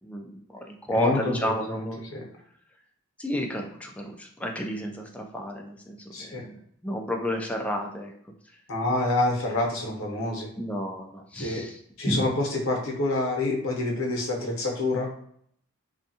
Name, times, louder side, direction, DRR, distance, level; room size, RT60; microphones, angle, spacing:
voice 1, 0.0-2.1 3.2-8.1 10.6-11.8 12.1-12.2, left 1 dB, 5° left, 2 dB, 0.3 m, -31 dB
voice 2, 0.9-1.8 2.1-2.2 6.1-6.4 8.7-10.5 11.3-11.6 12.0-15.1, left 2 dB, 85° left, -1 dB, 0.7 m, -27 dB
2.6 x 2.3 x 2.7 m, 0.65 s
head